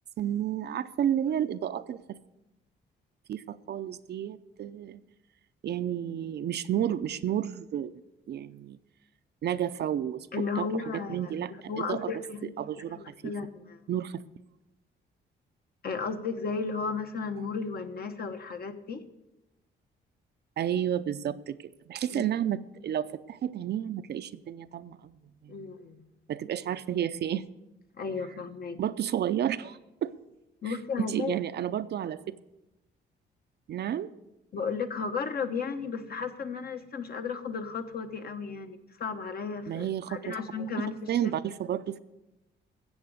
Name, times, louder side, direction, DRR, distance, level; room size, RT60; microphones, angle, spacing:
voice 1, 0.2-2.2 3.3-5.0 5.6-7.9 8.3-8.8 9.4-10.3 10.6-10.7 10.9-12.1 12.6-13.3 13.9-14.2 20.6-21.6 21.9-25.1 25.4-25.6 26.3-27.4 28.8-30.1 30.7-32.2 33.7-34.1 39.7-40.4 41.1-42.0, right 10 dB, 55° right, 12 dB, 0.5 m, -31 dB
voice 2, 10.3-13.8 15.8-19.1 22.1-22.3 25.5-26.1 28.0-28.8 30.6-31.3 34.5-41.0, left 5 dB, 50° left, 7 dB, 1.1 m, -34 dB
13.5 x 8.0 x 6.5 m, 0.97 s
cardioid pair, 90°, 20 cm